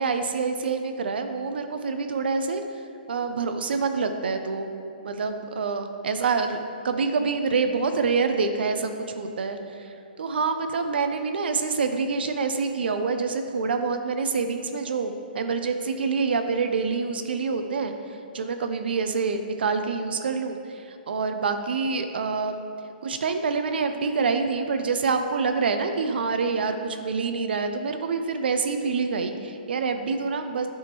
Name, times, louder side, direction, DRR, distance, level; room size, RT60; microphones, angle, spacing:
voice 1, 0.0-2.6 3.1-4.7 5.0-6.6 6.8-22.6 23.0-30.7, right 4 dB, 75° right, 7 dB, 0.4 m, -26 dB
9.4 x 3.5 x 3.0 m, 2.6 s
hypercardioid pair, 160°, 5 cm